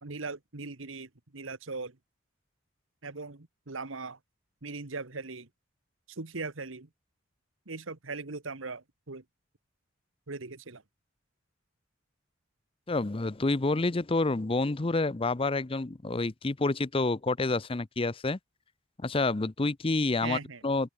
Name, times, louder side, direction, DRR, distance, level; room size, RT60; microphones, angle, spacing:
voice 1, 0.0-2.0 3.0-4.2 4.6-5.5 6.1-6.9 7.7-9.2 10.3-10.8 20.2-20.6, right 3 dB, 85° right, 1.6 m, -39 dB
voice 2, 12.9-18.4 19.0-20.9, left 3 dB, 25° left, 0.6 m, -28 dB
open air
head